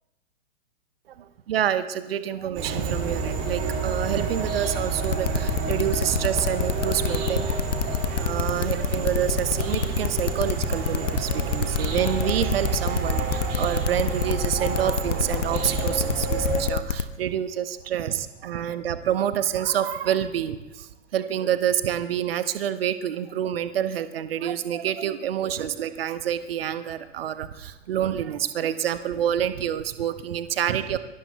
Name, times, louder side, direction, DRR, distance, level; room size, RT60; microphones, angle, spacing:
voice 1, 1.5-7.6 8.2-31.0, right 10 dB, 50° right, 12 dB, 1.0 m, -27 dB
sound 1, 2.6-16.6, right 4 dB, 25° right, 2.6 m, -29 dB
sound 2, 5.0-17.0, left 8 dB, 65° left, 1.0 m, -26 dB
26.0 x 23.0 x 2.3 m, 1.0 s
figure-of-eight pair, 110°, 39 cm